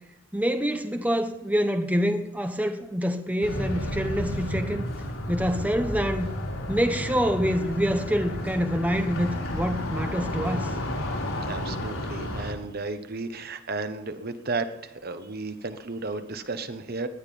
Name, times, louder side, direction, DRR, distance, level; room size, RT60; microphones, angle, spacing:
voice 1, 0.3-4.9 5.3-6.3 6.7-10.7, equal, 5° right, 1.0 m, -26 dB
sound 1, 3.4-12.5, left 1 dB, 80° left, 5.3 m, -31 dB
voice 2, 11.4-17.1, right 3 dB, 50° right, 1.2 m, -33 dB
18.5 x 11.5 x 5.5 m
head